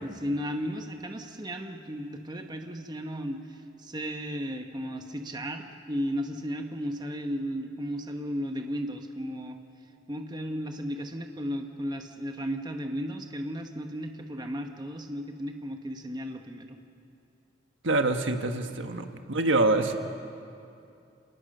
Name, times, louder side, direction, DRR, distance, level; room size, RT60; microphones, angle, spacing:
voice 1, 0.0-9.6 10.1-16.8, equal, 20° right, 5 dB, 1.1 m, -34 dB
voice 2, 17.8-20.0, right 2 dB, 75° right, 6 dB, 1.4 m, -25 dB
28.0 x 19.0 x 6.7 m, 2.6 s
head